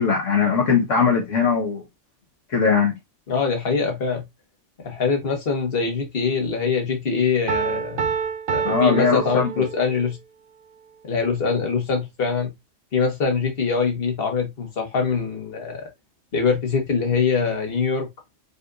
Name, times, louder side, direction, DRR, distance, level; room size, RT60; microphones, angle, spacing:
voice 1, 0.0-1.8 2.5-3.0 8.6-9.5, left 5 dB, 70° left, 1.5 m, -20 dB
voice 2, 3.3-4.2 4.8-8.1 8.5-10.2 11.0-12.5 12.9-15.9 16.3-18.1, left 5 dB, 50° left, 1.6 m, -23 dB
Piano, 7.5-10.1, right 6 dB, 50° right, 0.8 m, -27 dB
5.4 x 3.4 x 2.5 m
omnidirectional pair, 1.3 m